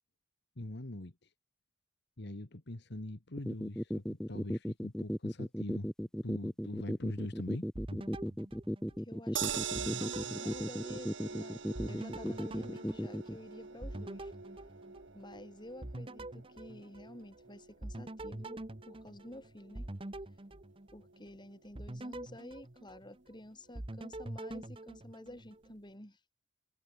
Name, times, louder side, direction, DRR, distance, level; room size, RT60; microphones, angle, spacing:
voice 1, 0.5-1.3 2.2-5.9 6.2-8.4, left 1 dB, 60° left, 1.7 m, -43 dB
sound 1, 3.4-13.4, equal, 5° left, 0.7 m, -36 dB
sound 2, 7.7-9.4 9.7-11.4 11.7-15.4 15.8-17.4 17.8-21.3 21.7-23.4 23.7-25.7, right 1 dB, 30° right, 1.1 m, -45 dB
voice 2, 9.0-10.1 10.4-11.6 11.9-14.3 15.1-19.9 20.9-26.2, left 1 dB, 25° left, 6.0 m, -51 dB
sound 3, 9.4-21.6 22.0-22.1 22.4-22.5, right 7 dB, 70° right, 1.6 m, -44 dB
head